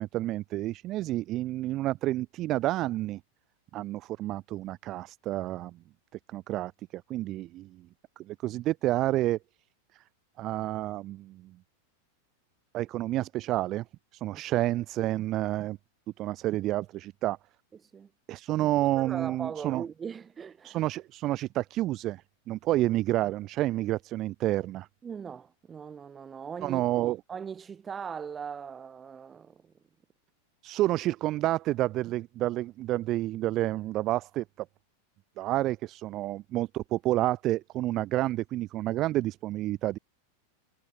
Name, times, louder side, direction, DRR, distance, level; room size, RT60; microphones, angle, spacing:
voice 1, 0.0-3.2 3.7-5.8 6.3-7.9 8.2-9.4 10.4-11.6 12.7-13.8 14.1-15.8 16.2-17.4 18.3-19.8 20.6-24.9 26.6-27.2 30.6-34.7 35.4-40.0, right 15 dB, 35° right, 0.6 m, -29 dB
voice 2, 19.0-20.8 25.0-29.7, right 7 dB, 20° right, 4.8 m, -40 dB
figure-of-eight pair, 90°, 0 cm